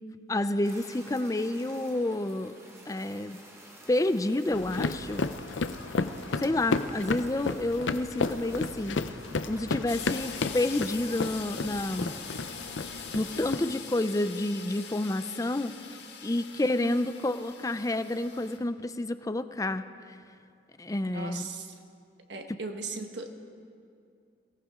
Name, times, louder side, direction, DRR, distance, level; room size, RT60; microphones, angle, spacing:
voice 1, 0.3-2.6 2.9-3.4 3.9-5.2 6.4-9.0 9.5-12.1 13.1-15.7 16.2-19.9 20.8-21.4, left 1 dB, 20° left, 12 dB, 0.4 m, -29 dB
Fire, 0.6-13.5, right 1 dB, 15° right, 1.4 m, -52 dB
sound 1, 4.5-13.6, left 3 dB, 85° left, 0.6 m, -33 dB
sound 2, 9.9-18.6, left 6 dB, 65° left, 1.6 m, -43 dB
voice 2, 21.1-21.7 22.3-23.3, right 3 dB, 70° right, 5 dB, 1.4 m, -38 dB
22.0 x 18.0 x 3.7 m, 2.4 s
head